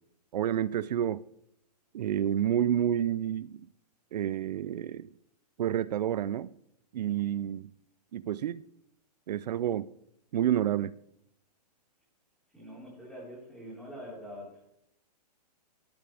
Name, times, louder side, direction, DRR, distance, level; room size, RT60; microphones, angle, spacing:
voice 1, 0.3-1.2 1.9-3.6 4.1-5.1 5.6-6.5 6.9-7.7 8.1-8.6 9.3-9.9 10.3-10.9, right 10 dB, 75° right, 0.5 m, -29 dB
voice 2, 12.5-14.7, equal, ahead, 4.3 m, -44 dB
12.5 x 11.5 x 3.4 m
hypercardioid pair, 160°, 21 cm